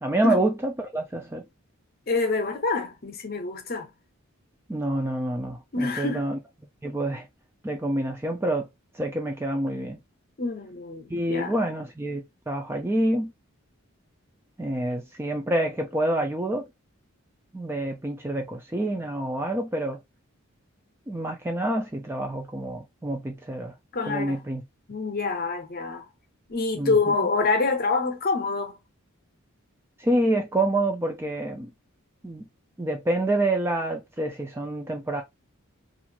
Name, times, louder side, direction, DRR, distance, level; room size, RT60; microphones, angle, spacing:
voice 1, 0.0-1.4 4.7-6.4 6.8-7.3 7.6-8.7 8.9-10.0 11.1-13.3 14.6-16.7 17.5-20.0 21.1-23.7 24.1-24.6 26.7-27.1 30.0-31.7 32.2-32.5 32.8-35.2, right 1 dB, 10° right, 0.3 m, -27 dB
voice 2, 2.1-3.9 5.7-6.3 10.4-11.5 23.9-24.4 24.9-26.0 26.5-28.8, left 3 dB, 45° left, 0.7 m, -26 dB
3.0 x 2.5 x 2.2 m
head